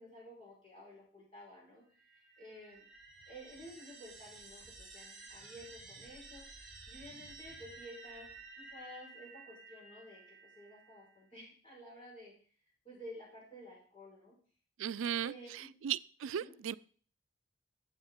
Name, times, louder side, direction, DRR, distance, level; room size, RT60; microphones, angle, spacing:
voice 1, 0.0-1.8 2.1-2.8 3.3-6.4 6.9-8.3 8.6-12.3 12.8-14.3 15.2-15.7 16.2-16.6, equal, 30° left, -5 dB, 5.0 m, -52 dB
sound 1, 1.9-11.2, right 3 dB, ahead, 3.5 m, -53 dB
voice 2, 14.8-15.3 15.8-16.8, right 9 dB, 90° right, 16 dB, 0.4 m, -36 dB
12.0 x 7.9 x 3.8 m, 0.43 s
head